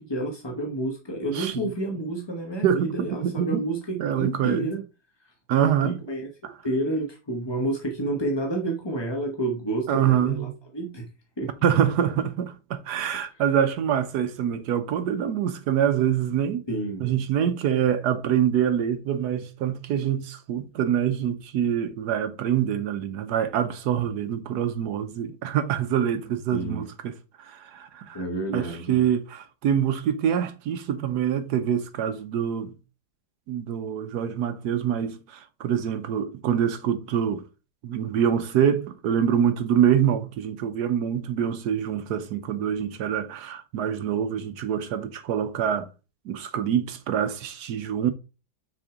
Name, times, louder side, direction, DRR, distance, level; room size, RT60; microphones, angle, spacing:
voice 1, 0.0-4.8 5.6-6.3 6.6-11.1 11.4-11.5 13.1-13.3 16.7-17.1 26.5-26.9 28.1-29.0, right 1 dB, 25° left, 0.6 m, -30 dB
voice 2, 1.3-1.7 2.6-3.6 4.0-4.7 5.5-6.0 6.4-6.5 9.9-10.4 11.6-16.6 17.0-26.9 27.4-28.2 28.5-32.8 33.5-37.4 37.8-45.9 46.3-48.1, right 9 dB, 70° right, 1.1 m, -25 dB
6.1 x 4.3 x 4.8 m
omnidirectional pair, 2.1 m